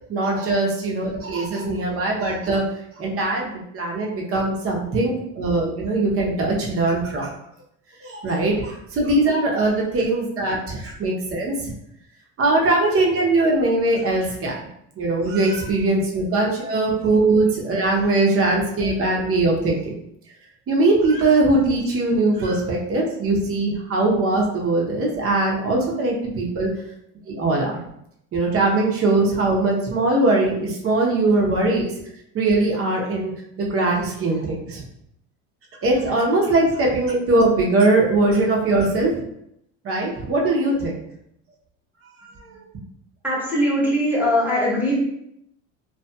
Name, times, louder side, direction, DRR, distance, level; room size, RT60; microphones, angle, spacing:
voice 1, 0.1-2.6 3.0-7.3 8.0-11.7 12.4-14.6 15.0-19.9 20.7-26.7 27.3-27.8 28.3-31.9 32.3-33.3 33.6-34.8 35.8-39.2 39.8-40.9 42.4-42.5, right 2 dB, 35° right, -1 dB, 0.8 m, -21 dB
voice 2, 43.2-45.0, equal, 5° right, -5 dB, 0.9 m, -21 dB
2.8 x 2.4 x 2.2 m, 0.76 s
supercardioid pair, 95°, 39 cm